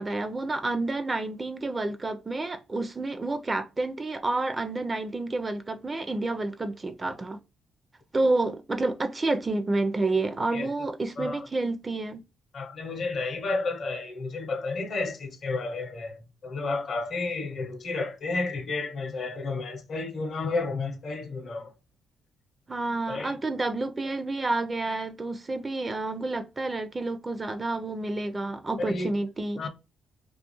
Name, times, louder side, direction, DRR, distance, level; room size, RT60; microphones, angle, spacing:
voice 1, 0.0-7.4 8.1-12.2 22.7-29.7, right 2 dB, 25° right, 0.4 m, -29 dB
voice 2, 12.5-21.7 23.1-23.3 28.8-29.1 29.6-29.7, left 3 dB, 55° left, 0.7 m, -31 dB
2.4 x 2.3 x 2.9 m
cardioid pair, 90°, 0 cm